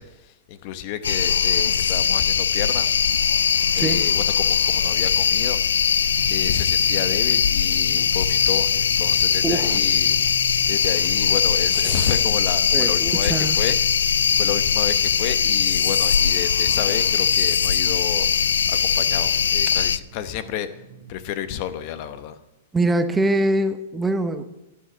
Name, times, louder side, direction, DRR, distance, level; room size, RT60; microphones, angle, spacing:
voice 1, 0.0-2.9 3.7-6.0 6.3-10.2 10.7-20.7 21.1-22.4, left 11 dB, 45° left, 12 dB, 0.9 m, -31 dB
sound 1, 1.0-20.0, left 7 dB, 85° left, 0.3 m, -20 dB
Drum, 6.0-22.2, right 7 dB, 65° right, 1.1 m, -43 dB
voice 2, 9.4-9.8 11.8-12.1 12.7-13.6 22.7-24.4, right 2 dB, 10° right, 9 dB, 0.8 m, -23 dB
11.5 x 6.7 x 7.8 m, 0.95 s
hypercardioid pair, 130°, 0 cm